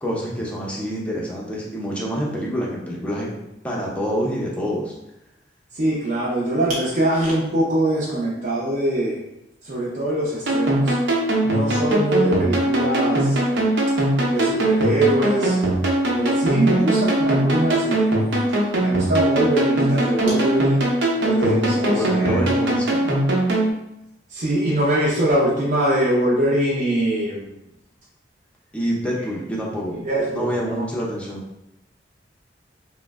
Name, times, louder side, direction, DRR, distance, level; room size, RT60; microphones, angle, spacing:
voice 1, 0.0-3.3 3.6-4.9 11.8-12.0 21.3-23.0 28.7-30.0 30.3-31.4, equal, 5° left, -4 dB, 0.5 m, -27 dB
voice 2, 5.7-9.2 9.6-11.0 11.4-13.7 14.3-15.6 16.1-18.4 18.8-20.9 21.2-22.5 24.3-27.5 30.0-30.8, right 1 dB, 45° right, -7 dB, 0.6 m, -23 dB
sound 1, 10.5-23.7, right 1 dB, 85° right, 0.8 m, -21 dB
3.1 x 2.0 x 3.4 m, 0.86 s
head